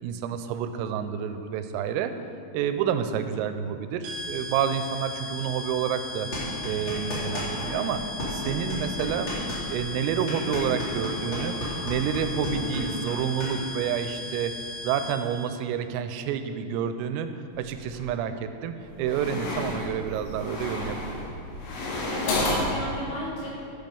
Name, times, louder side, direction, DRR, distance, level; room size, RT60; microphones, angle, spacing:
voice 1, 0.0-2.1 2.5-6.3 6.6-8.0 8.3-9.3 9.7-11.6 11.8-14.5 14.8-17.3 17.6-21.3, right 8 dB, 90° right, 9 dB, 3.3 m, -29 dB
sound 1, 4.0-15.4, left 2 dB, 70° right, 2.1 m, -37 dB
sound 2, 6.3-7.7 7.9-13.5, left 1 dB, 35° left, 2.3 m, -33 dB
voice 2, 12.6-12.9 19.2-19.5 22.1-23.5, left 1 dB, 55° left, -8 dB, 4.5 m, -35 dB
sound 3, 17.5-18.2 18.8-22.8, left 2 dB, 75° left, 4.3 m, -31 dB
10.5 x 8.0 x 5.3 m, 2.5 s
omnidirectional pair, 5.8 m